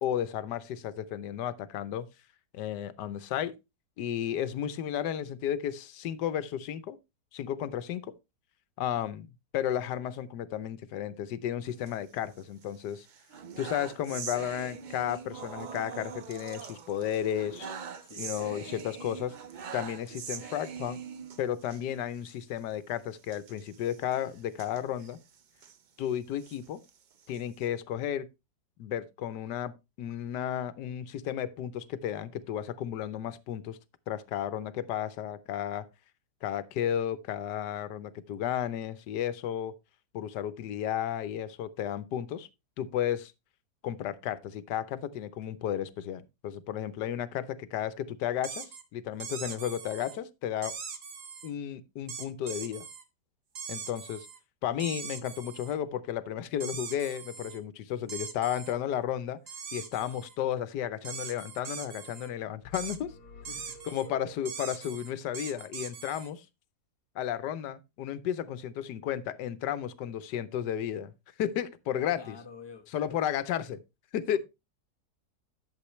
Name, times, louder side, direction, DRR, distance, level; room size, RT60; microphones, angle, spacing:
voice 1, 0.0-2.1 2.5-3.5 4.0-7.0 7.3-8.1 8.8-9.3 9.5-13.1 13.6-17.7 18.2-19.3 19.7-21.0 21.4-25.2 26.0-26.8 27.3-28.3 28.8-29.7 30.0-33.8 34.1-35.9 36.4-39.7 40.1-42.5 42.8-43.3 43.8-48.6 48.9-50.8 51.4-52.9 53.7-54.3 54.6-59.4 59.7-63.1 63.9-66.4 67.1-71.1 71.4-72.3 72.9-73.8 74.1-74.4, left 10 dB, 90° left, 1.3 m, -33 dB
sound 1, 11.7-12.7 13.0-21.8 22.2-22.3 22.6-22.7 23.3-25.8 26.3-27.7, right 7 dB, 70° right, 0.4 m, -43 dB
voice 2, 18.0-18.7 63.5-63.8 72.1-73.2 74.3-74.4, left 4 dB, 15° left, 1.1 m, -48 dB
sound 2, 48.4-48.8 49.2-50.2 50.6-51.5 52.1-53.0 53.6-54.4 54.8-55.8 56.6-57.6 58.1-58.7 59.5-60.4 61.0-62.3 62.7-63.0 63.5-64.1 64.5-66.3, right 6 dB, 55° right, 1.5 m, -41 dB
sound 3, 62.6-65.0, left 1 dB, 70° left, 1.6 m, -50 dB
11.5 x 7.0 x 3.0 m
omnidirectional pair, 1.8 m